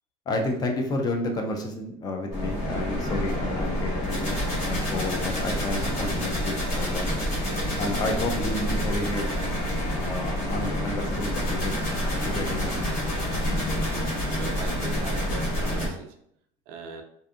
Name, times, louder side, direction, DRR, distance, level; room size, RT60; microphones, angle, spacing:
voice 1, 0.3-4.4 4.7-7.2 7.8-9.3 9.9-11.8 12.2-12.8, left 2 dB, 25° left, 3 dB, 0.4 m, -31 dB
sound 1, 2.3-15.9, equal, 55° left, 1.4 m, -28 dB
sound 2, 2.6-3.6, equal, 75° left, 0.9 m, -44 dB
voice 2, 14.3-16.1 16.7-17.0, right 5 dB, 70° right, 4 dB, 0.5 m, -40 dB
2.6 x 2.5 x 2.4 m, 0.72 s
cardioid pair, 140°, 15 cm